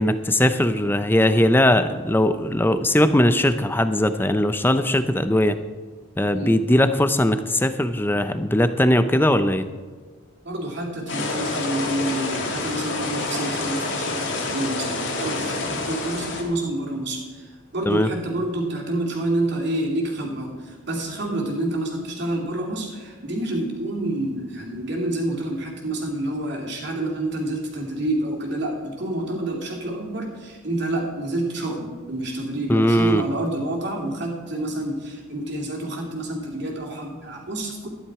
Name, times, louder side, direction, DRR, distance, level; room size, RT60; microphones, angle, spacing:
voice 1, 0.0-5.6 6.2-9.7 17.9-18.1 32.7-33.2, left 1 dB, 10° left, 11 dB, 0.5 m, -19 dB
voice 2, 10.4-37.9, right 1 dB, 55° right, 0 dB, 2.8 m, -28 dB
sound 1, 11.1-16.4, left 2 dB, 60° left, 2.0 m, -28 dB
13.0 x 10.5 x 4.8 m, 1.5 s
head